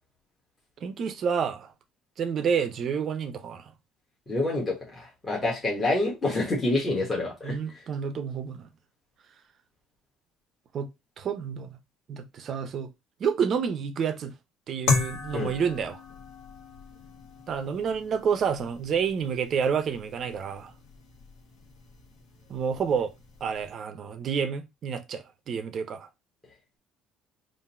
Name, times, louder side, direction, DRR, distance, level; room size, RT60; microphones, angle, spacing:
voice 1, 0.8-1.7 2.2-3.7 7.4-8.7 10.7-10.9 11.2-11.7 12.1-12.9 13.2-14.3 14.7-16.0 17.5-20.7 22.5-23.1 23.4-26.1, right 6 dB, 40° right, 0.6 m, -29 dB
voice 2, 4.3-7.5 15.3-15.5, left 2 dB, 20° left, 1.3 m, -27 dB
sound 1, 14.9-23.7, left 3 dB, 70° left, 1.4 m, -35 dB
3.7 x 2.6 x 4.2 m
cardioid pair, 150°, 0 cm